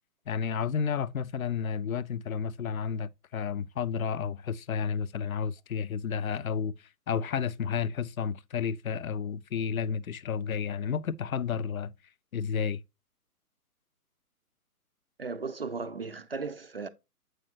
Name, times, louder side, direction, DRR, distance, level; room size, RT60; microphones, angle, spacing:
voice 1, 0.3-6.7 7.1-11.9 12.3-12.8, left 6 dB, 60° left, 0.5 m, -31 dB
voice 2, 15.2-16.9, right 4 dB, 40° right, 0.4 m, -36 dB
7.8 x 4.9 x 2.7 m
figure-of-eight pair, 135°, 47 cm